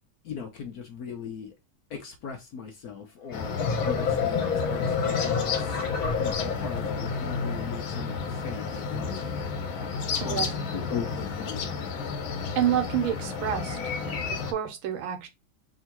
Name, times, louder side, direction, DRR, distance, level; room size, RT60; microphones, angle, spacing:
voice 1, 0.2-1.6 1.9-5.9 6.2-9.6 10.1-11.9, left 7 dB, 65° left, 0.9 m, -39 dB
sound 1, 3.3-14.5, left 5 dB, 85° left, 1.7 m, -32 dB
sound 2, 3.3-7.2, left 6 dB, 50° left, 1.5 m, -28 dB
voice 2, 12.5-13.8 14.0-15.3, right 10 dB, 90° right, 1.7 m, -28 dB
3.6 x 2.7 x 4.4 m
omnidirectional pair, 2.1 m